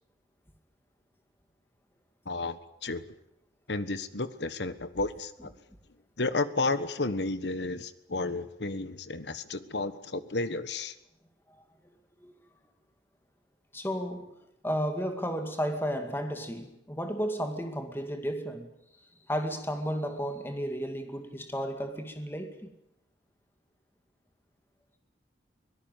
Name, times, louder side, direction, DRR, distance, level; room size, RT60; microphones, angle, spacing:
voice 1, 2.2-3.0 3.7-5.5 6.2-10.9, left 3 dB, 70° left, 1.4 m, -32 dB
voice 2, 11.5-12.0 12.2-12.3 13.7-14.4 14.6-18.7 19.3-22.7, equal, 10° left, 2.3 m, -33 dB
23.5 x 17.5 x 9.2 m
head